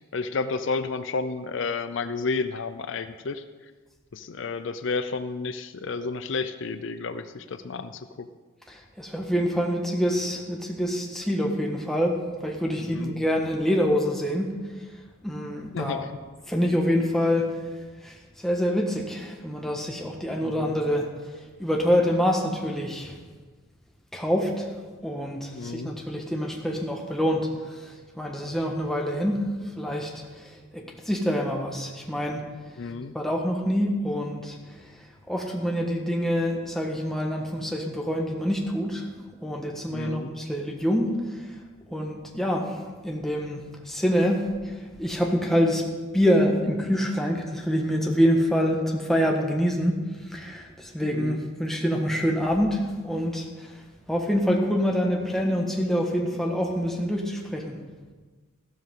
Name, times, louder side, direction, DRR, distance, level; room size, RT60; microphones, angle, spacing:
voice 1, 0.0-3.4 4.1-8.3 12.7-13.2 15.7-16.1 20.4-20.7 25.5-25.9 32.8-33.1 39.9-40.3 51.0-51.4, left 4 dB, 65° left, 11 dB, 0.5 m, -31 dB
voice 2, 8.7-14.6 15.2-16.1 16.5-17.6 18.0-21.1 21.6-23.2 24.1-24.7 25.0-32.5 33.1-34.9 35.3-39.1 39.4-41.6 41.9-42.8 43.0-45.9 46.1-50.0 50.3-57.8, equal, ahead, 0 dB, 1.4 m, -26 dB
14.5 x 12.5 x 3.8 m, 1.4 s
head